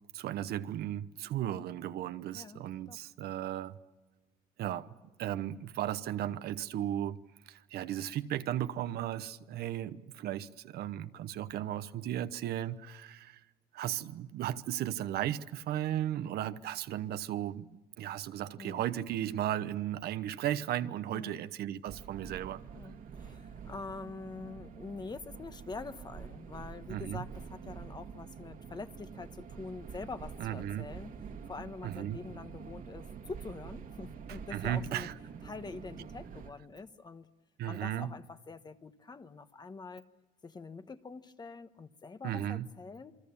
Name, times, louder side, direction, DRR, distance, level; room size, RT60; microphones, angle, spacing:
voice 1, 0.1-3.8 4.6-4.9 5.2-7.2 7.5-13.4 13.7-22.6 26.9-27.2 30.4-30.9 31.8-32.2 34.5-35.1 37.6-38.1 42.2-42.7, right 12 dB, 70° right, 1.0 m, -35 dB
voice 2, 2.3-3.0 18.6-18.8 21.1-21.4 22.7-31.2 31.4-35.1 35.4-37.3 37.7-40.0 40.4-43.1, left 4 dB, 25° left, 1.2 m, -45 dB
sound 1, 21.9-36.5, right 6 dB, 55° right, 2.0 m, -47 dB
27.5 x 23.5 x 7.2 m
cardioid pair, 110°, 17 cm